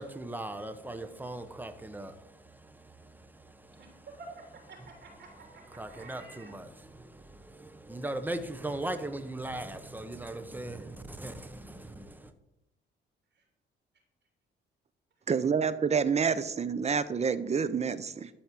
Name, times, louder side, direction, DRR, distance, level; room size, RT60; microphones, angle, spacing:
voice 1, 0.0-4.1 5.7-12.3, right 1 dB, 10° right, 1.0 m, -39 dB
voice 2, 4.2-6.5 13.3-13.4, right 3 dB, 60° right, 3.1 m, -50 dB
voice 3, 15.3-18.3, right 6 dB, 35° right, 0.7 m, -28 dB
12.0 x 4.4 x 7.6 m
cardioid pair, 90°, 20 cm